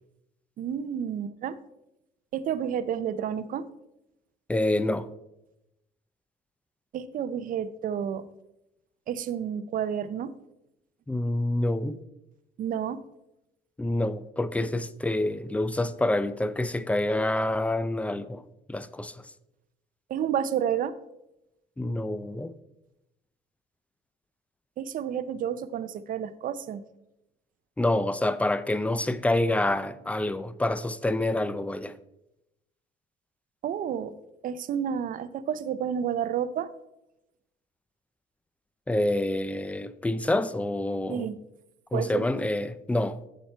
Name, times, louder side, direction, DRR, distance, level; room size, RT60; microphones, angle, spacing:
voice 1, 0.6-1.6 2.3-3.7 6.9-8.2 9.1-10.3 12.6-13.0 20.1-20.9 24.8-26.8 33.6-34.2 34.4-36.7 41.1-41.4 41.9-42.2, right 8 dB, 55° right, 0.6 m, -30 dB
voice 2, 4.5-5.1 11.1-12.0 13.8-18.4 18.7-19.2 21.8-22.5 27.8-31.9 38.9-41.3 41.9-43.2, left 1 dB, 10° left, 0.4 m, -27 dB
7.3 x 7.2 x 4.5 m
cardioid pair, 110°, 17 cm